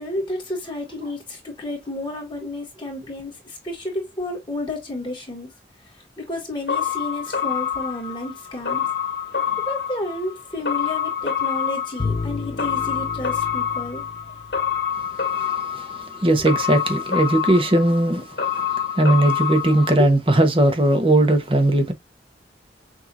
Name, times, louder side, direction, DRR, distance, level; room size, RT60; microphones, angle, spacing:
voice 1, 0.0-5.5 6.2-8.8 9.6-14.0, left 1 dB, 25° left, 1.8 m, -31 dB
sound 1, 6.7-20.0, left 8 dB, 75° left, 1.8 m, -27 dB
Bowed string instrument, 12.0-15.1, left 4 dB, 45° left, 0.6 m, -31 dB
voice 2, 15.4-18.2 19.0-21.9, right 1 dB, 30° right, 1.0 m, -18 dB
6.2 x 2.8 x 2.8 m
head